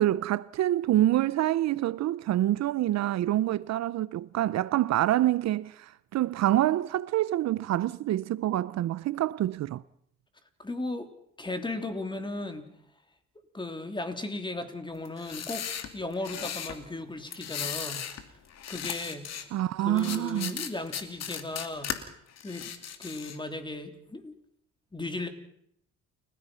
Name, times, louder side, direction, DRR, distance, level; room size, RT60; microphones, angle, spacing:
voice 1, 0.0-9.8 19.5-20.6, right 13 dB, 65° right, 0.7 m, -26 dB
voice 2, 10.6-11.1 11.4-12.6 13.5-15.7 15.9-18.1 18.7-19.3 19.8-21.9 22.4-22.7 23.0-24.3 24.9-25.3, left 2 dB, 15° left, 3.4 m, -36 dB
sound 1, 15.1-16.8 17.3-18.2 18.5-19.5 20.0-22.0 22.4-23.4, left 8 dB, 65° left, 2.7 m, -36 dB
30.0 x 16.0 x 5.7 m
cardioid pair, 95°, 29 cm